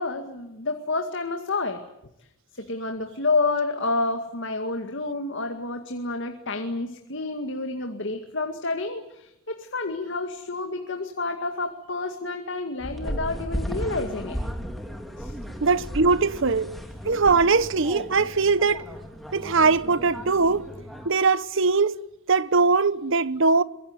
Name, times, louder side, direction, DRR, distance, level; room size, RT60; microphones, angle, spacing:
voice 1, 0.0-1.9 2.6-14.4 15.2-15.4, left 3 dB, 60° left, 2.1 m, -29 dB
sound 1, 12.8-21.1, equal, ahead, 3.2 m, -35 dB
voice 2, 15.6-16.8 17.0-18.9 19.3-20.7 21.0-22.0 22.3-23.6, right 4 dB, 65° right, 0.9 m, -21 dB
24.5 x 22.5 x 9.6 m
head